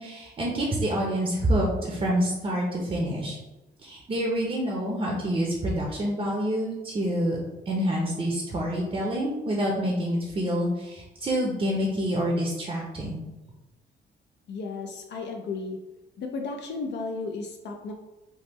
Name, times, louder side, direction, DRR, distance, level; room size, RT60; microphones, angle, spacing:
voice 1, 0.0-3.4 3.8-7.4 7.7-13.2, equal, 30° right, -2 dB, 0.6 m, -27 dB
voice 2, 14.5-15.8 16.2-17.9, left 4 dB, 65° left, 3 dB, 0.4 m, -34 dB
3.4 x 2.0 x 3.0 m, 1.1 s
cardioid pair, 90°, 20 cm